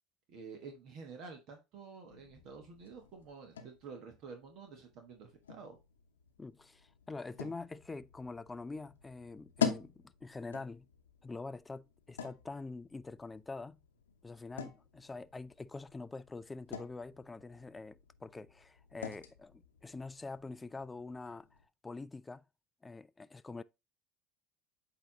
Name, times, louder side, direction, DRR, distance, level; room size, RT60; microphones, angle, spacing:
voice 1, 0.3-5.8, right 5 dB, 55° right, 1.3 m, -50 dB
sound 1, 2.1-21.7, left 7 dB, 90° left, 0.9 m, -45 dB
voice 2, 6.4-10.9 11.2-13.8 14.2-21.5 21.8-22.4 22.8-23.6, left 3 dB, 15° left, 0.4 m, -45 dB
8.2 x 3.0 x 3.8 m
hypercardioid pair, 75°, 0 cm